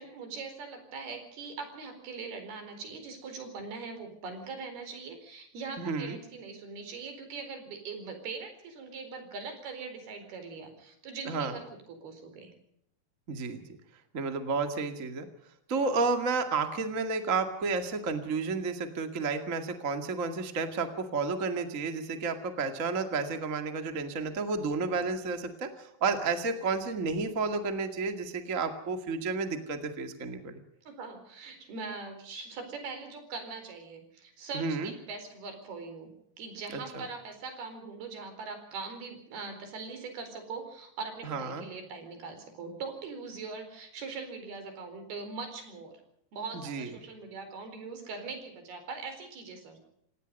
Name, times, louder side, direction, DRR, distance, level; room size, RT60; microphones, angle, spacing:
voice 1, 0.0-12.5 16.0-16.1 30.9-46.0 46.3-49.8, right 4 dB, 70° right, 7 dB, 6.3 m, -41 dB
voice 2, 5.8-6.2 11.2-11.5 13.3-13.6 14.1-15.3 15.7-30.5 34.5-34.9 36.7-37.0 41.2-41.6 46.6-46.9, right 4 dB, 30° right, 7 dB, 1.5 m, -31 dB
28.0 x 18.0 x 5.4 m, 0.73 s
omnidirectional pair, 4.7 m